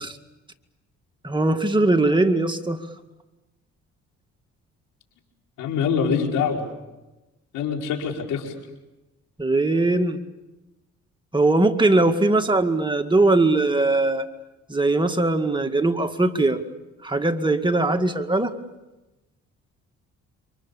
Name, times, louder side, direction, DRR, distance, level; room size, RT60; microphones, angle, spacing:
voice 1, 1.2-2.8 9.4-10.2 11.3-14.3 14.7-16.6 17.0-18.5, right 2 dB, 15° right, 5 dB, 2.0 m, -20 dB
voice 2, 5.6-6.7 7.5-8.5, left 6 dB, 90° left, 1 dB, 5.2 m, -24 dB
28.5 x 25.5 x 7.2 m, 1.0 s
cardioid pair, 90°, 30 cm